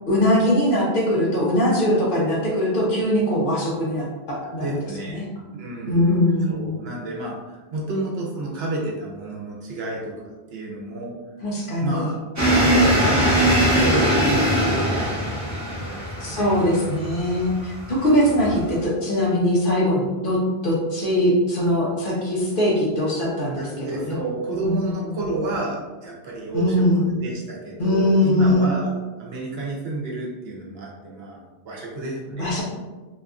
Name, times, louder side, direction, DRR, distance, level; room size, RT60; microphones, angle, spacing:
voice 1, 0.1-4.8 5.1-5.3 5.8-6.7 11.4-12.1 16.2-24.2 24.6-24.8 25.0-25.1 26.5-27.1 27.8-28.7 32.4-32.6, left 1 dB, 60° left, -4 dB, 0.9 m, -21 dB
voice 2, 4.5-5.2 5.5-6.2 6.5-11.1 11.8-12.2 12.5-16.5 18.3-18.5 23.4-28.9 29.2-31.4 31.6-32.6, right 2 dB, 75° right, -3 dB, 0.9 m, -31 dB
sound 1, 12.4-18.8, right 1 dB, 20° right, 0.5 m, -21 dB
2.8 x 2.4 x 2.3 m, 1.2 s
omnidirectional pair, 1.1 m